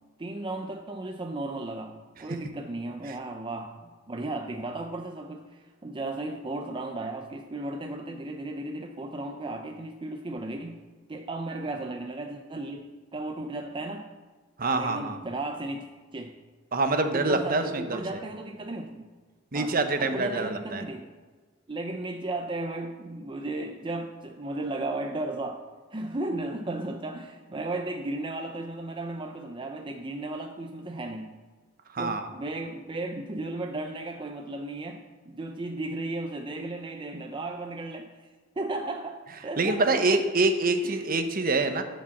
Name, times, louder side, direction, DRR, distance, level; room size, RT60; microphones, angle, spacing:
voice 1, 0.2-10.8 11.1-14.1 14.8-15.8 16.1-16.3 17.0-19.1 19.5-21.1 21.7-25.6 25.9-31.3 32.0-38.3 38.6-40.2 40.8-41.1, right 2 dB, 25° right, 4 dB, 0.5 m, -35 dB
voice 2, 14.6-15.2 16.7-18.0 19.5-20.8 31.9-32.3 39.6-41.8, right 3 dB, 45° right, 8 dB, 0.8 m, -25 dB
11.0 x 5.3 x 7.0 m, 1.4 s
head